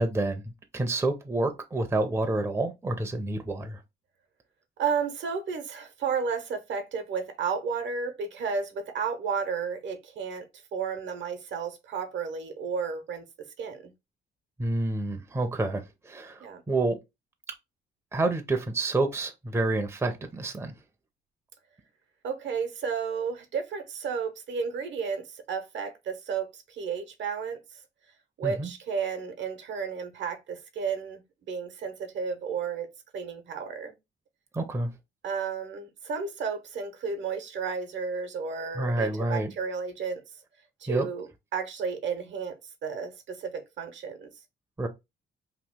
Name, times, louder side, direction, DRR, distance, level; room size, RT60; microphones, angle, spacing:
voice 1, 0.0-3.8 14.6-17.0 18.1-20.7 28.4-28.7 34.5-34.9 38.8-39.5 40.9-41.1 44.8-44.9, right 2 dB, 15° right, 0.5 m, -28 dB
voice 2, 4.8-10.4 10.7-13.2 13.6-13.9 16.4-16.6 22.2-27.8 28.4-32.9 33.1-33.9 35.2-40.2 40.8-44.3, right 6 dB, 70° right, 0.8 m, -32 dB
3.0 x 2.4 x 3.5 m
cardioid pair, 90°, 20 cm